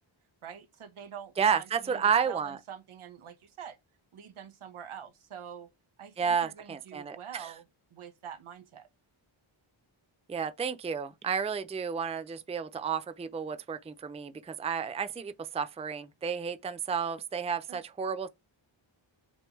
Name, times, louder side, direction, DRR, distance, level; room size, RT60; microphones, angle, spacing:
voice 1, 0.4-3.8 4.1-5.7 6.0-8.9 17.7-17.8, right 8 dB, 85° right, 1.4 m, -46 dB
voice 2, 1.4-2.6 6.2-7.5 10.3-18.3, right 6 dB, 15° right, 0.4 m, -31 dB
6.2 x 3.2 x 4.8 m
wide cardioid pair, 150°, 48 cm